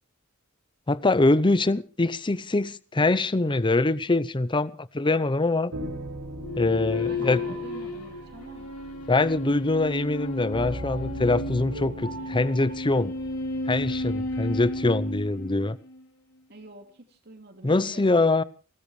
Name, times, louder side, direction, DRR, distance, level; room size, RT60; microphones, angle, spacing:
voice 1, 0.9-5.7 6.6-7.4 9.1-13.2 13.7-15.8 17.6-18.4, left 2 dB, 20° left, 0.7 m, -24 dB
sound 1, 5.7-15.3, right 1 dB, 80° right, 7.4 m, -39 dB
sound 2, 6.4-16.0, left 2 dB, 80° left, 3.9 m, -33 dB
voice 2, 7.1-8.7 16.5-18.3, right 1 dB, 50° right, 2.7 m, -46 dB
29.5 x 14.0 x 3.3 m
head